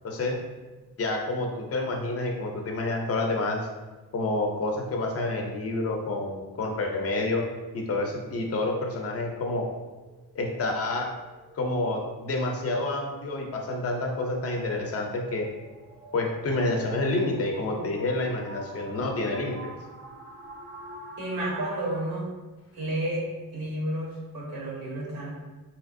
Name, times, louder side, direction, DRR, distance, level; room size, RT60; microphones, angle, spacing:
voice 1, 0.0-0.5 1.0-3.7 4.1-7.4 7.7-9.7 10.3-11.1 11.5-15.5 16.1-19.6, left 2 dB, 40° left, 1 dB, 0.5 m, -28 dB
sound 1, 9.9-22.1, right 1 dB, 35° right, 0.5 m, -47 dB
voice 2, 21.2-22.3 22.7-23.2 23.5-25.3, right 1 dB, 75° right, -4 dB, 1.0 m, -31 dB
3.3 x 2.8 x 2.5 m, 1.2 s
wide cardioid pair, 165°, 37 cm